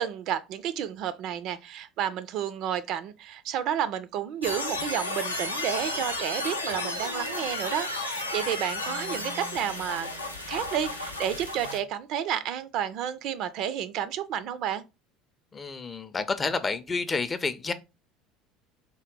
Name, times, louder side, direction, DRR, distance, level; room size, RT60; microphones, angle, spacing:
voice 1, 0.0-10.1 10.5-14.8, right 9 dB, 50° right, 0.3 m, -31 dB
sound 1, 4.4-11.8, left 2 dB, 85° left, 0.4 m, -33 dB
voice 2, 15.5-17.7, left 4 dB, 25° left, 0.4 m, -29 dB
3.6 x 2.1 x 3.7 m
figure-of-eight pair, 65°, 0 cm